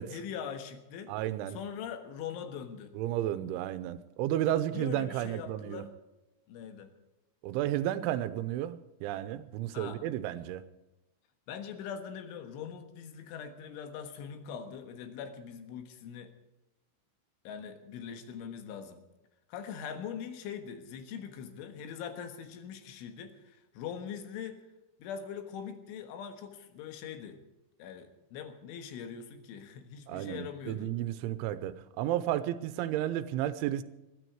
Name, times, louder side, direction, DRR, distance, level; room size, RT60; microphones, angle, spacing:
voice 1, 0.1-1.1 1.5-2.9 4.7-5.9 6.5-6.9 9.7-10.0 11.5-16.3 17.5-19.0 19.5-24.6 25.0-27.4 27.8-30.9, left 7 dB, 85° left, 7 dB, 3.9 m, -42 dB
voice 2, 1.1-1.6 3.0-5.8 7.4-10.6 30.1-33.8, right 12 dB, 90° right, 12 dB, 3.2 m, -32 dB
21.5 x 13.0 x 4.7 m, 0.99 s
omnidirectional pair, 5.4 m